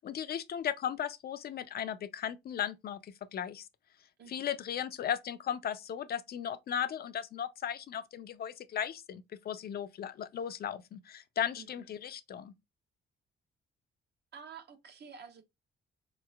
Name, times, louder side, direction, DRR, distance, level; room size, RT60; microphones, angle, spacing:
voice 1, 0.0-3.7 4.3-12.5, left 9 dB, 50° left, 0.4 m, -36 dB
voice 2, 4.2-4.5 11.6-11.9 14.3-15.4, right 6 dB, 55° right, 0.8 m, -50 dB
4.0 x 2.9 x 2.2 m
cardioid pair, 90°, 20 cm